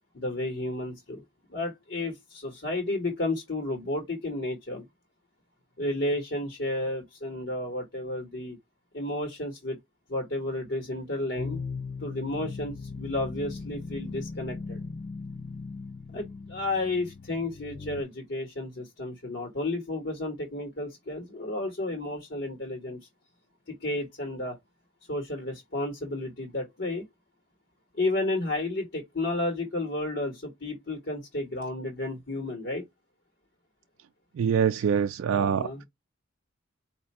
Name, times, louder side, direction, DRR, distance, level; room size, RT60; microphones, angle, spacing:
voice 1, 0.1-1.2 1.5-4.8 5.8-8.6 8.9-9.8 10.1-11.6 12.0-14.8 16.1-23.0 23.7-24.6 25.1-27.0 27.9-32.8 35.3-35.8, left 2 dB, 60° left, 1.4 m, -32 dB
sound 1, 11.4-18.0, left 4 dB, 35° left, 0.5 m, -38 dB
voice 2, 34.4-35.8, right 7 dB, 80° right, 0.3 m, -25 dB
4.3 x 2.7 x 4.2 m
head